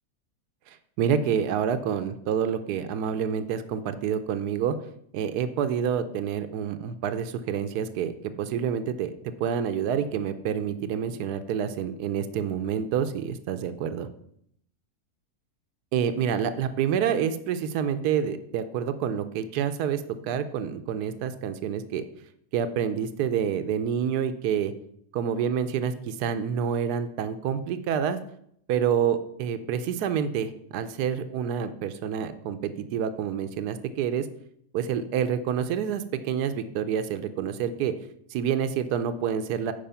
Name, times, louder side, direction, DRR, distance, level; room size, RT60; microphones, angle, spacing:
voice 1, 0.7-4.8 5.1-14.1 15.9-22.0 22.5-24.7 25.1-28.2 28.7-34.3 34.7-37.9 38.3-39.7, right 8 dB, 85° right, 10 dB, 1.2 m, -28 dB
10.5 x 4.8 x 5.6 m, 0.71 s
omnidirectional pair, 1.7 m